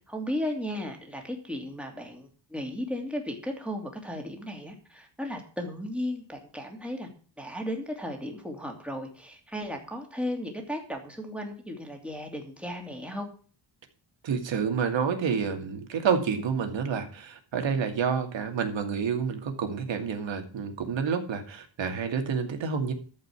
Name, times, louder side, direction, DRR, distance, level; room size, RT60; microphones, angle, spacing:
voice 1, 0.1-7.1 7.4-13.3, left 1 dB, 5° right, 2 dB, 2.8 m, -35 dB
voice 2, 14.2-22.9, right 6 dB, 80° right, 6 dB, 2.5 m, -29 dB
14.0 x 5.5 x 8.3 m, 0.41 s
wide cardioid pair, 160°, 45 cm